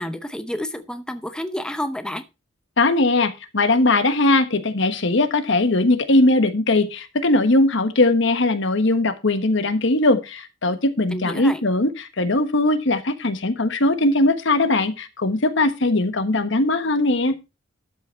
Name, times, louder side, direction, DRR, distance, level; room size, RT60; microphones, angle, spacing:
voice 1, 0.0-2.2 11.1-11.6, left 1 dB, 5° left, 0.7 m, -30 dB
voice 2, 2.8-17.3, left 2 dB, 70° left, 1.3 m, -20 dB
12.5 x 5.6 x 4.5 m
head